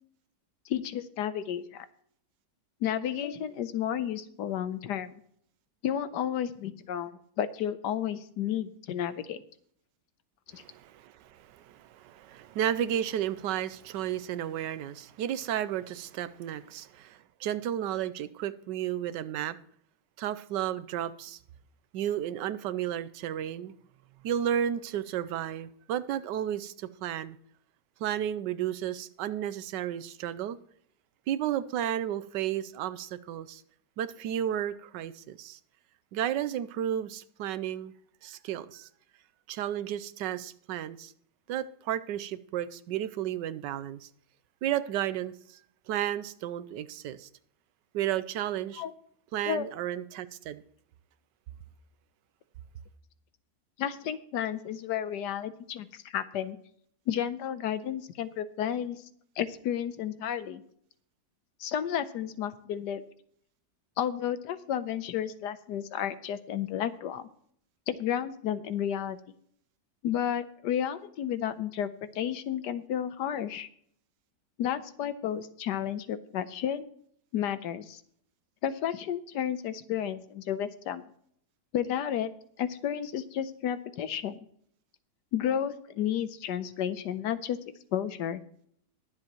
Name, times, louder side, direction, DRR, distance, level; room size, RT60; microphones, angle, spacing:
voice 1, 0.7-1.9 2.8-5.2 5.8-9.4 10.5-10.6 48.8-48.9 49.5-49.7 53.8-56.6 57.1-59.0 59.4-60.6 61.6-63.0 64.0-67.3 67.9-69.2 70.0-73.7 74.6-76.9 77.3-78.0 78.6-81.0 81.7-82.3 82.6-84.4 85.3-87.6 87.9-88.4, left 10 dB, 75° left, 1.3 m, -32 dB
voice 2, 10.5-19.6 20.2-21.4 21.9-23.7 24.2-27.4 28.0-30.6 31.3-33.6 34.0-35.6 36.1-37.9 38.2-38.9 39.5-41.1 41.5-44.1 44.6-45.3 45.9-47.3 47.9-48.8 49.3-50.6, right 11 dB, 85° right, 1.3 m, -33 dB
21.0 x 7.7 x 3.0 m
omnidirectional pair, 1.9 m